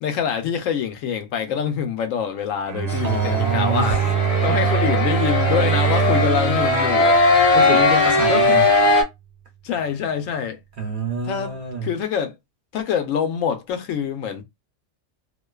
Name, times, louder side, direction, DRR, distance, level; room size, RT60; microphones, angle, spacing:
voice 1, 0.0-4.0 4.4-7.2 8.3-8.6 9.6-10.6 11.2-11.5 11.8-12.4 12.7-14.4, left 7 dB, 90° left, 1.0 m, -25 dB
Bowed string instrument, 2.7-7.9, right 11 dB, 90° right, 1.0 m, -24 dB
sound 1, 2.9-9.0, left 2 dB, 35° left, 0.7 m, -19 dB
voice 2, 3.0-4.1 4.4-4.5 7.3-8.6 10.8-11.9, right 2 dB, 50° right, 0.7 m, -26 dB
2.4 x 2.3 x 2.2 m
omnidirectional pair, 1.3 m